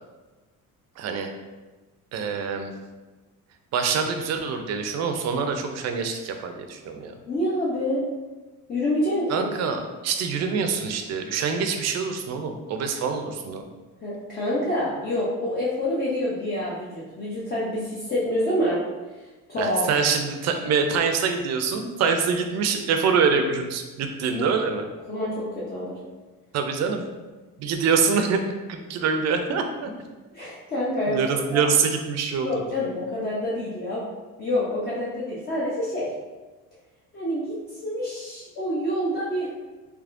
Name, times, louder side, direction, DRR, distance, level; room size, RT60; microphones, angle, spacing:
voice 1, 1.0-1.3 2.1-2.7 3.7-7.2 9.3-13.6 19.6-24.8 26.5-27.1 27.6-28.4 28.7-29.9 31.1-32.8, right 5 dB, 50° right, 5 dB, 0.4 m, -25 dB
voice 2, 7.2-8.1 8.7-9.5 14.0-18.8 19.5-20.0 24.4-24.5 25.1-26.0 30.3-31.6 32.4-34.1 34.4-36.1 37.1-39.5, left 1 dB, 30° left, -7 dB, 0.5 m, -27 dB
3.4 x 3.2 x 2.5 m, 1.2 s
cardioid pair, 155°, 34 cm